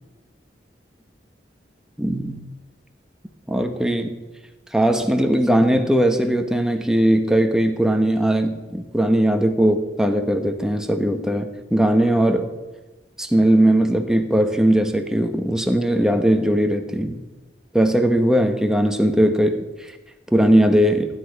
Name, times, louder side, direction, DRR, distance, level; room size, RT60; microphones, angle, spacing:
voice 1, 2.0-2.5 3.5-4.2 4.7-12.5 13.2-17.2 17.7-19.9 20.3-21.1, right 1 dB, 5° right, 5 dB, 1.1 m, -19 dB
16.0 x 10.5 x 5.3 m, 1.2 s
head